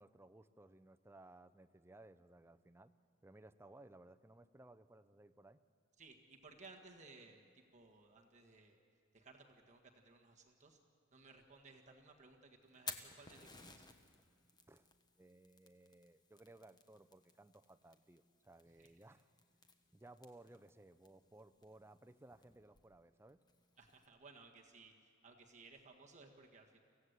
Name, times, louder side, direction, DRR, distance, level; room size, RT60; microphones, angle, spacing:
voice 1, 0.0-2.9 3.2-5.6 14.7-14.9 15.2-19.3 19.9-23.4, right 2 dB, 10° right, 9 dB, 0.5 m, -60 dB
voice 2, 6.0-7.4 7.7-8.8 9.1-10.8 11.1-13.9 18.8-18.9 23.8-26.8, right 3 dB, 35° right, 1 dB, 1.7 m, -60 dB
Fire, 12.6-24.1, left 4 dB, 20° left, 1.1 m, -57 dB
25.0 x 16.0 x 8.1 m, 2.3 s
head